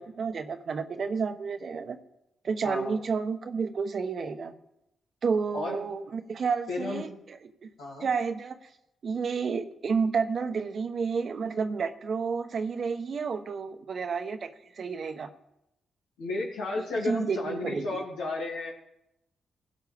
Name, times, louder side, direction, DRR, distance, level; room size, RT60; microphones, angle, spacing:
voice 1, 0.0-2.0 2.4-4.5 5.2-7.7 8.0-8.6 9.0-14.5 14.8-15.3 16.8-18.0, right 5 dB, 60° right, 7 dB, 1.1 m, -30 dB
voice 2, 2.6-3.0 5.5-5.8 6.7-7.1 7.8-8.1 16.2-18.7, left 2 dB, 85° left, -3 dB, 2.7 m, -33 dB
17.0 x 9.1 x 3.5 m, 0.86 s
supercardioid pair, 45°, 0 cm